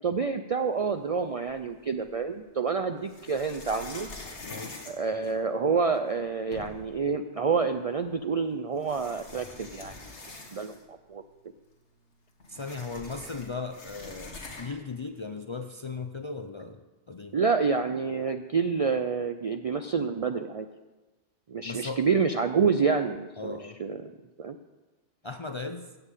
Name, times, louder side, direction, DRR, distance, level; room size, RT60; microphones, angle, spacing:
voice 1, 0.0-4.1 4.9-9.9 10.5-11.2 17.3-20.7 21.5-24.1 24.4-24.6, right 5 dB, 55° right, 8 dB, 0.4 m, -28 dB
sound 1, 1.5-2.2 3.0-5.8 6.2-6.3 6.5-7.0 8.1-8.2 8.8-11.0 11.3-11.4 11.7-14.9, left 3 dB, 90° left, 1.9 m, -45 dB
voice 2, 4.4-4.8 12.5-17.4 21.6-22.0 23.4-23.8 25.2-26.0, left 4 dB, 40° left, 7 dB, 0.4 m, -37 dB
14.5 x 5.6 x 8.2 m, 1.2 s
omnidirectional pair, 1.1 m